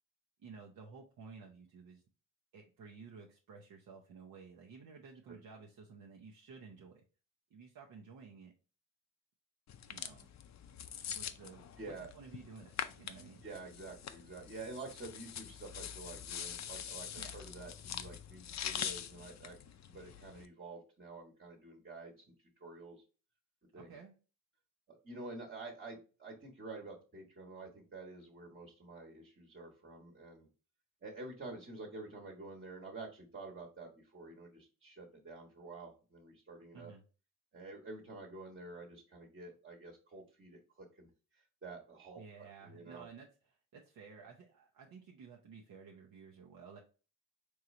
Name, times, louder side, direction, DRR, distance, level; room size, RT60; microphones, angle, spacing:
voice 1, 0.4-2.0 2.5-7.0 7.5-8.5 9.9-10.3 11.0-13.4 17.1-17.4 23.8-24.1 36.7-37.0 42.2-46.8, right 5 dB, 70° right, -1 dB, 0.9 m, -54 dB
sound 1, 9.7-20.4, left 9 dB, 55° left, 0.5 m, -44 dB
voice 2, 11.8-12.1 13.4-19.6 19.9-22.2 22.6-23.0 23.7-24.0 24.9-30.5 31.0-36.9 37.5-41.1 41.3-43.0, right 3 dB, 35° right, -1 dB, 1.3 m, -49 dB
4.5 x 3.1 x 2.6 m, 0.34 s
cardioid pair, 85°, 34 cm